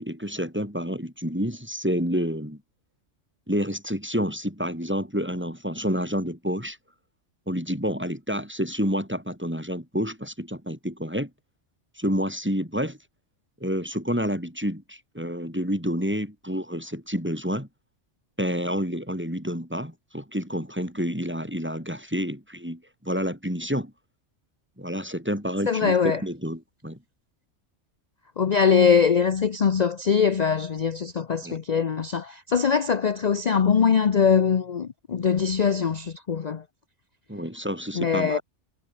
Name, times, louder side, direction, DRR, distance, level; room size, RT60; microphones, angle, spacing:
voice 1, 0.0-2.6 3.5-6.8 7.5-11.3 12.0-13.0 13.6-17.7 18.4-23.9 24.8-27.0 31.4-31.6 37.3-38.4, equal, 10° right, 6.9 m, -29 dB
voice 2, 25.7-26.2 28.4-36.6 37.9-38.4, left 6 dB, 40° left, 0.7 m, -22 dB
omnidirectional pair, 1.3 m